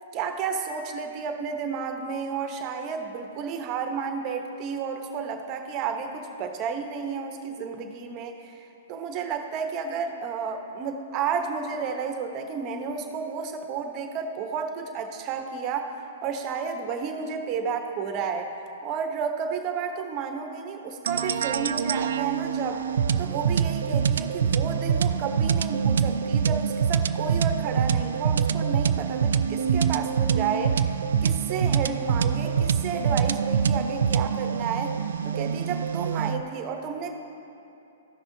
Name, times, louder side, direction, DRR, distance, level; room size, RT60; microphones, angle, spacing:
voice 1, 0.1-16.0 16.2-18.5 18.8-22.8 23.2-30.8 31.2-34.9 35.2-37.1, right 6 dB, 35° right, 5 dB, 0.9 m, -32 dB
sound 1, 21.1-36.4, right 7 dB, 75° right, 0.3 m, -25 dB
15.0 x 6.0 x 2.8 m, 2.8 s
hypercardioid pair, 125°, 0 cm